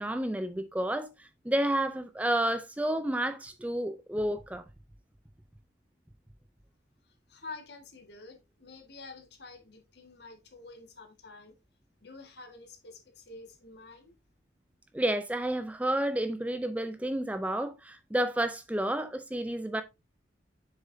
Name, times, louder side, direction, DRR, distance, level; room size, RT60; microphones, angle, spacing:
voice 1, 0.0-4.6 14.9-19.8, right 1 dB, 10° right, 0.4 m, -30 dB
voice 2, 7.3-11.5 12.0-14.2, left 3 dB, 60° left, 1.8 m, -48 dB
7.4 x 6.5 x 2.7 m
head